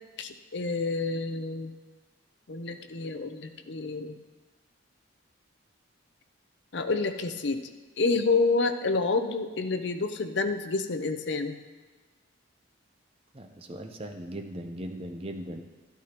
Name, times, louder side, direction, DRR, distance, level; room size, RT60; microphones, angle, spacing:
voice 1, 0.2-1.7 2.5-4.1 6.7-7.7 8.0-11.6, left 3 dB, 60° left, 8 dB, 0.6 m, -28 dB
voice 2, 13.3-15.6, right 1 dB, 30° right, 4 dB, 0.7 m, -38 dB
13.0 x 12.5 x 3.0 m, 1.3 s
head